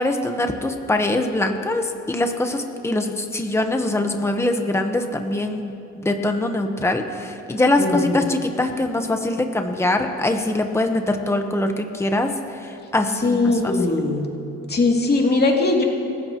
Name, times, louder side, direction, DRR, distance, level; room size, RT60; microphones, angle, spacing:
voice 1, 0.0-12.3 12.9-13.4 13.6-13.7, left 2 dB, 10° left, 5 dB, 1.2 m, -23 dB
voice 2, 7.8-8.2 13.2-14.2 14.7-15.8, left 3 dB, 35° left, -1 dB, 2.8 m, -20 dB
28.0 x 15.0 x 3.1 m, 2.6 s
cardioid pair, 90°, 30 cm